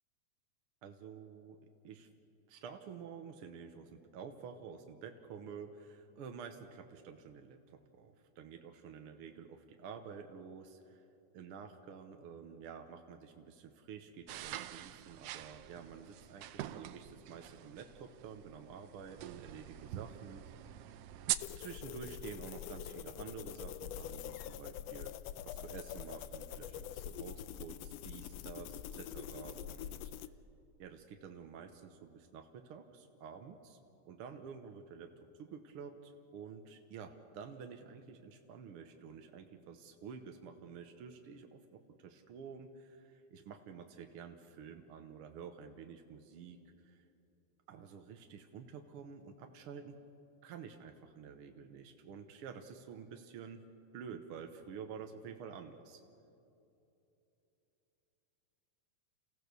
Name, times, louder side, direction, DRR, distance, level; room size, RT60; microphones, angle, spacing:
voice 1, 0.8-1.6 1.8-2.1 2.5-11.0 11.3-20.9 21.5-25.1 25.4-30.1 30.8-33.8 34.0-35.1 35.4-47.0 47.7-49.9 50.4-53.6 53.9-56.0, right 6 dB, 65° right, 5 dB, 1.5 m, -50 dB
sound 1, 14.3-21.4, right 13 dB, 80° right, 1.4 m, -44 dB
sound 2, 21.4-30.3, left 10 dB, 75° left, 1.5 m, -45 dB
29.0 x 16.0 x 6.8 m, 2.9 s
omnidirectional pair, 3.4 m